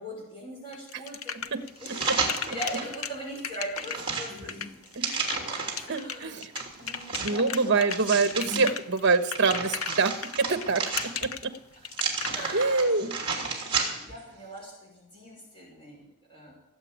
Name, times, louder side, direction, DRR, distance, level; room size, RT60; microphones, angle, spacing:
voice 1, 0.0-4.8 5.8-7.9 8.6-8.8 12.3-16.5, right 1 dB, 25° left, -4 dB, 5.6 m, -41 dB
sound 1, 0.7-12.3, left 7 dB, 65° left, 0.8 m, -35 dB
sound 2, 1.8-2.9 3.4-5.9 6.5-8.6 9.1-11.4 11.9-14.2 14.6-14.7, right 4 dB, 25° right, 3.1 m, -32 dB
voice 2, 4.9-5.4 5.7-6.5 7.2-11.5 12.5-13.1, right 4 dB, 50° right, 9 dB, 1.2 m, -26 dB
18.0 x 8.0 x 8.8 m, 0.85 s
head